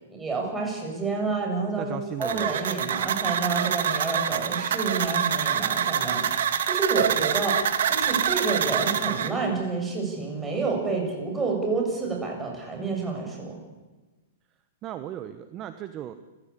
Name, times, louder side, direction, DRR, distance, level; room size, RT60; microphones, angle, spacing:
voice 1, 0.1-13.6, right 4 dB, 10° right, 1 dB, 7.4 m, -29 dB
voice 2, 1.8-2.5 14.8-16.1, right 11 dB, 30° right, 10 dB, 1.3 m, -36 dB
sound 1, 2.2-9.3, right 8 dB, 75° right, 1.9 m, -26 dB
27.0 x 16.0 x 8.6 m, 1.2 s
hypercardioid pair, 130°, 0 cm